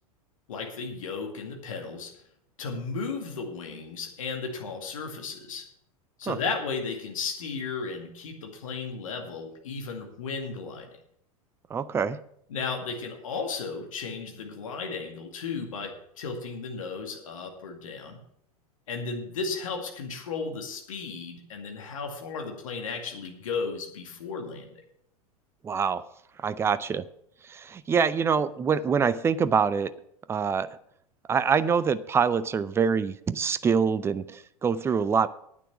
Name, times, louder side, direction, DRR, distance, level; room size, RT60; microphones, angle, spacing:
voice 1, 0.5-2.1 2.6-5.6 6.2-11.0 12.5-18.2 18.9-24.8, left 4 dB, 60° left, 3 dB, 2.2 m, -34 dB
voice 2, 11.7-12.2 25.6-26.0 26.4-27.1 27.5-29.9 30.3-30.7 31.3-35.3, right 6 dB, 15° right, 16 dB, 0.5 m, -25 dB
9.9 x 9.3 x 5.8 m, 0.70 s
figure-of-eight pair, 90°, 19 cm